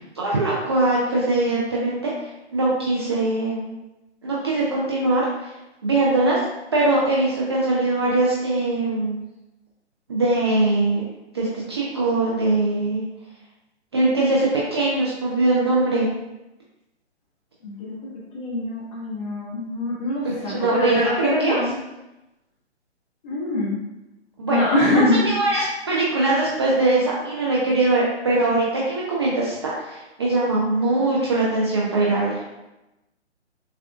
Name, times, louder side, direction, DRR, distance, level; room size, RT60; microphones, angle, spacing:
voice 1, 0.0-3.8 4.2-5.5 5.8-6.4 6.7-9.2 10.1-11.0 11.3-13.0 13.9-16.1 20.2-21.6 24.4-24.6 24.9-32.4, right 2 dB, 25° right, -6 dB, 0.4 m, -22 dB
voice 2, 17.6-18.0 18.3-21.7 23.2-23.8 24.5-25.2, left 1 dB, 25° left, -5 dB, 1.1 m, -23 dB
6.7 x 2.3 x 2.3 m, 0.97 s
hypercardioid pair, 145°, 34 cm